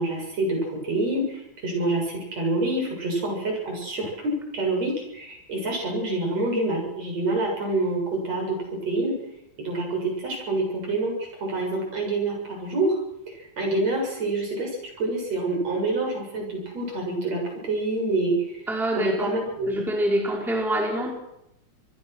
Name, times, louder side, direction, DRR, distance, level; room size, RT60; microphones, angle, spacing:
voice 1, 0.0-8.6 8.9-9.1 9.6-13.0 13.3-18.6 18.9-19.8, right 2 dB, 55° right, 0 dB, 8.7 m, -27 dB
voice 2, 18.7-19.4 19.7-21.1, right 1 dB, ahead, 1 dB, 4.1 m, -25 dB
27.0 x 20.5 x 6.3 m, 0.83 s
omnidirectional pair, 3.5 m